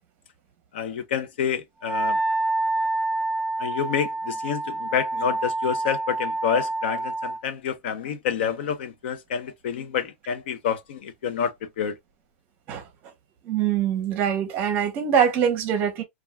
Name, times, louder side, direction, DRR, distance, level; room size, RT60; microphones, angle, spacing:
voice 1, 0.7-2.2 3.6-12.0, left 7 dB, 55° left, 0.6 m, -28 dB
Wind instrument woodwind instrument, 1.8-7.4, right 2 dB, 5° left, 0.4 m, -27 dB
voice 2, 13.5-16.0, right 8 dB, 25° right, 0.7 m, -23 dB
2.3 x 2.2 x 3.2 m
supercardioid pair, 170°, 7 cm